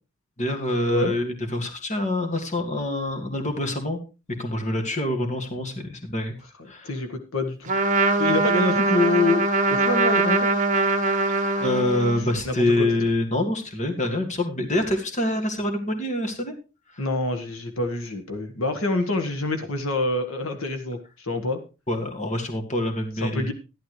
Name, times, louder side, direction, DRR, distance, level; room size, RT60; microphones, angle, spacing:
voice 1, 0.4-4.0 4.3-6.3 6.7-6.9 11.6-16.5 16.9-17.0 21.9-23.5, left 1 dB, 35° left, 3 dB, 2.1 m, -26 dB
voice 2, 6.8-7.7 8.2-10.5 12.2-12.9 17.0-21.6 23.2-23.5, left 2 dB, 75° left, 6 dB, 1.6 m, -26 dB
Trumpet, 7.7-12.2, right 3 dB, 40° right, 1.4 m, -22 dB
13.0 x 11.5 x 3.2 m, 0.30 s
head